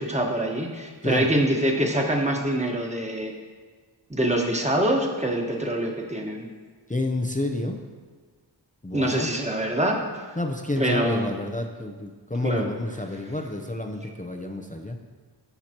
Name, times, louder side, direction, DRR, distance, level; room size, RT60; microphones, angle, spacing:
voice 1, 0.0-3.3 4.1-6.5 8.9-10.0 10.8-11.4 12.4-12.7, right 1 dB, 15° right, 1 dB, 1.4 m, -25 dB
voice 2, 6.9-7.8 8.8-9.3 10.4-15.0, left 2 dB, 20° left, 3 dB, 0.7 m, -29 dB
16.5 x 5.8 x 3.0 m, 1.5 s
wide cardioid pair, 50°, 44 cm